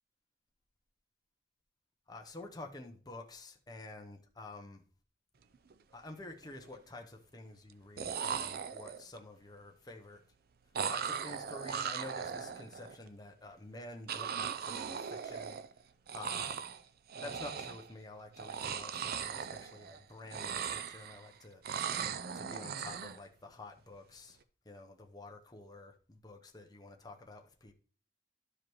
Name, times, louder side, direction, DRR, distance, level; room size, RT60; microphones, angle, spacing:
voice 1, 2.1-4.8 5.9-10.2 10.8-15.6 16.1-16.6 17.2-21.6 22.3-24.4 24.6-27.7, left 2 dB, 20° left, 0.8 m, -49 dB
sound 1, 5.5-5.7 6.1-6.7 7.7-7.8 8.0-9.2 10.7-12.9 14.1-15.8 16.1-16.8 17.1-17.9 18.3-20.0 20.2-21.3 21.6-23.2, right 7 dB, 55° right, 0.5 m, -38 dB
12.0 x 4.9 x 3.0 m
head